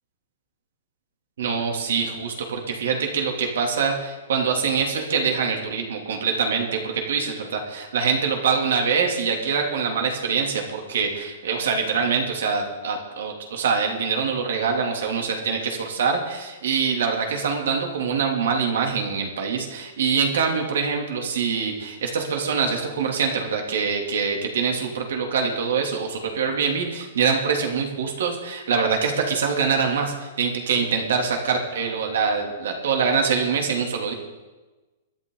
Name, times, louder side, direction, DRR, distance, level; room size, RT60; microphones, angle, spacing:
voice 1, 1.4-34.1, right 5 dB, 80° right, 2 dB, 2.9 m, -24 dB
23.5 x 9.4 x 4.0 m, 1.2 s
hypercardioid pair, 155°, 0 cm